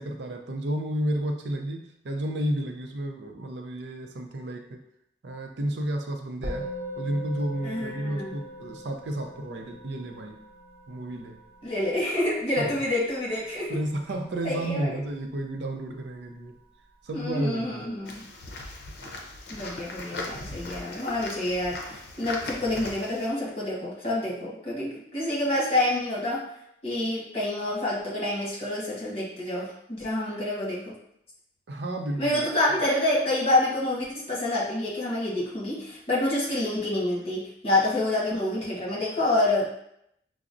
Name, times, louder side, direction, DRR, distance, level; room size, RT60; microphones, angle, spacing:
voice 1, 0.0-4.9 5.2-6.7 7.0-10.4 10.9-11.4 12.6-12.8 13.7-16.6 17.0-17.9 31.7-32.5, right 1 dB, 80° right, 4 dB, 0.5 m, -32 dB
Musical instrument, 6.4-16.0, equal, 55° right, 0.8 m, -41 dB
voice 2, 7.6-8.3 11.6-13.8 14.4-15.0 17.1-18.2 19.5-26.4 26.8-30.9 32.2-39.7, left 1 dB, 35° left, -5 dB, 1.1 m, -27 dB
sound 1, 18.1-23.3, left 2 dB, 60° left, 0.6 m, -39 dB
5.8 x 2.0 x 2.5 m, 0.74 s
head